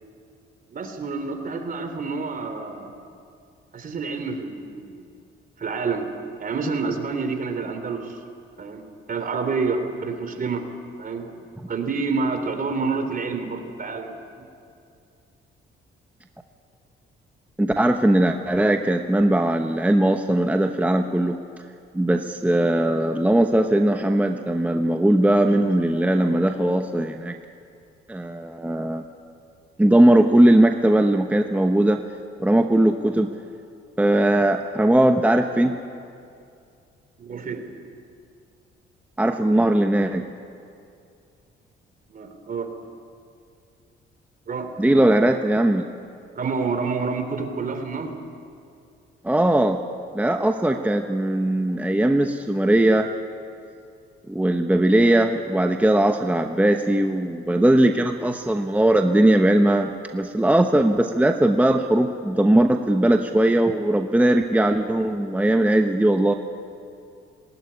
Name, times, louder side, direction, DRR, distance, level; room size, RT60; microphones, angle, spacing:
voice 1, 0.7-3.0 3.7-5.0 5.6-6.1 6.4-8.2 8.6-10.6 11.0-11.4 11.7-14.1 37.2-37.6 42.1-42.7 44.5-44.7 46.4-48.1, right 4 dB, 45° right, 6 dB, 3.4 m, -28 dB
voice 2, 17.6-21.4 21.9-27.4 28.1-29.0 29.8-32.0 32.4-33.3 34.0-35.7 39.2-40.2 44.8-45.8 49.2-49.8 50.1-53.1 54.3-66.3, right 1 dB, 5° right, 5 dB, 1.1 m, -19 dB
19.5 x 19.0 x 9.9 m, 2.4 s
cardioid pair, 90°, 20 cm